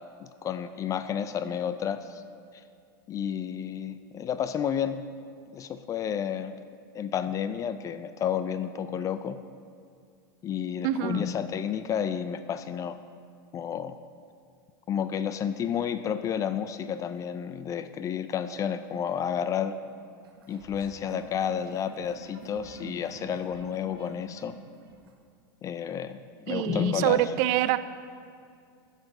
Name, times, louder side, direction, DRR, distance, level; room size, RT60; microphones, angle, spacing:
voice 1, 0.2-2.2 2.5-2.6 3.1-5.0 5.5-6.5 6.9-9.4 10.4-13.0 13.5-14.0 14.9-19.7 20.5-24.6 25.6-26.2 26.5-27.2, left 8 dB, 25° left, 11 dB, 0.4 m, -31 dB
voice 2, 10.8-11.3 26.5-27.8, right 13 dB, 55° right, 14 dB, 0.4 m, -26 dB
sound 1, 20.2-25.2, right 3 dB, 85° right, 1.1 m, -48 dB
10.5 x 6.6 x 4.9 m, 2.3 s
hypercardioid pair, 115°, 12 cm